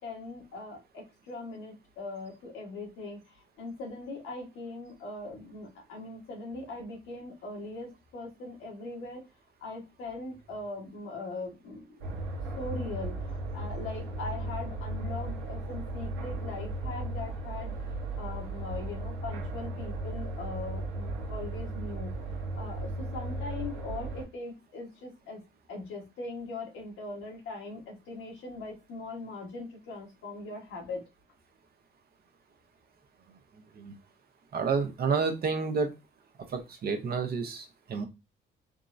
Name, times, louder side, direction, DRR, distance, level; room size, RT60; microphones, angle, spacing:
voice 1, 0.0-9.2 9.6-12.0 12.6-17.7 18.2-22.1 22.5-25.4 25.7-31.0, left 2 dB, 90° left, -1 dB, 1.2 m, -40 dB
sound 1, 12.0-24.3, right 2 dB, 90° right, 1.0 m, -36 dB
voice 2, 34.5-35.9 36.5-38.0, right 5 dB, 50° right, 5 dB, 0.7 m, -30 dB
3.6 x 2.0 x 2.5 m, 0.26 s
cardioid pair, 90°, 20 cm